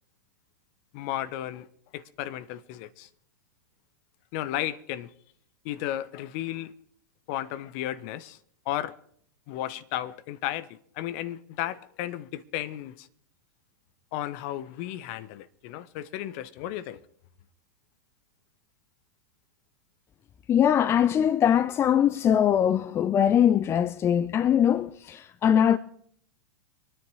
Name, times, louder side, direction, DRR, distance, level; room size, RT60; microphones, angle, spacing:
voice 1, 0.9-1.7 1.9-3.1 4.3-5.1 5.6-6.7 7.3-8.4 8.6-8.9 9.5-13.1 14.1-17.0, left 13 dB, 45° left, 1.1 m, -34 dB
voice 2, 20.5-25.8, left 9 dB, 25° left, 0.6 m, -22 dB
24.5 x 10.0 x 4.8 m
figure-of-eight pair, 95°, 10 cm